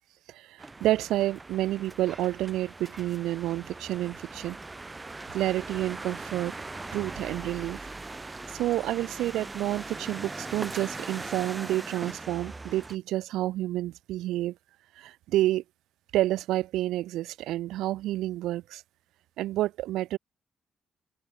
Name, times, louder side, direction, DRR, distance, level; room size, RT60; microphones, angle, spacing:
voice 1, 0.3-4.6 5.3-6.5 6.9-7.9 8.5-14.5 15.0-15.6 16.1-18.8 19.4-20.2, right 15 dB, 90° right, 2.6 m, -29 dB
sound 1, 0.6-13.0, right 3 dB, 20° right, 7.4 m, -40 dB
open air
cardioid pair, 90°, 0 cm